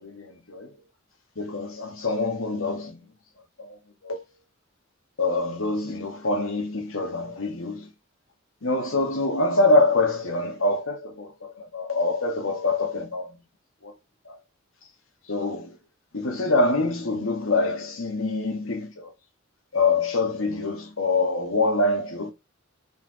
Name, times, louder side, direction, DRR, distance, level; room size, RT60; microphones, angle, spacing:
voice 1, 1.4-2.9 4.1-4.2 5.2-7.8 8.6-11.3 11.7-13.2 15.3-15.6 16.1-18.9 19.7-22.3, left 2 dB, 75° left, 1.9 m, -24 dB
5.4 x 4.8 x 5.0 m
head